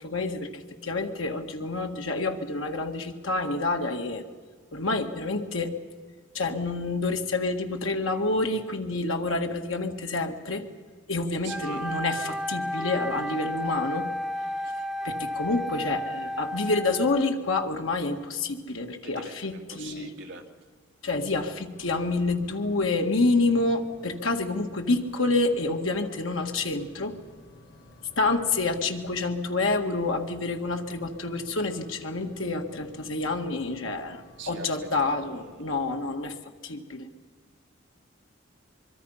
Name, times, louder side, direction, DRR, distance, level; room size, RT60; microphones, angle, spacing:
voice 1, 0.0-4.2 4.7-5.8 6.3-10.7 11.1-14.1 15.0-20.1 21.0-27.2 28.2-36.4 36.6-37.1, left 3 dB, 85° left, 4 dB, 1.9 m, -28 dB
Wind instrument woodwind instrument, 11.4-17.4, equal, ahead, 0.6 m, -32 dB
voice 2, 11.4-11.8 19.0-20.4 34.4-35.6, right 3 dB, 60° right, 2 dB, 2.3 m, -43 dB
sound 1, 21.7-35.5, left 1 dB, 60° left, 4.6 m, -53 dB
24.5 x 23.5 x 5.7 m, 1.5 s
head